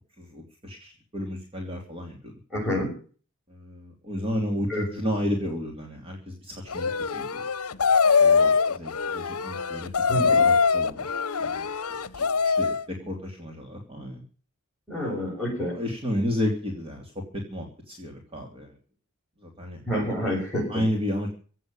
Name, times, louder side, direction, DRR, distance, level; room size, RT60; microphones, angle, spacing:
voice 1, 0.2-2.3 3.5-7.4 8.2-11.1 11.4-12.3 12.6-14.2 15.6-18.7 19.4-19.8 20.7-21.3, left 1 dB, 25° right, 2 dB, 3.0 m, -32 dB
voice 2, 2.5-2.9 4.7-4.8 10.0-10.5 14.9-15.8 19.9-20.8, equal, ahead, -7 dB, 7.2 m, -28 dB
sound 1, 6.7-12.8, left 5 dB, 70° left, 0.8 m, -23 dB
16.5 x 7.7 x 9.0 m, 0.40 s
head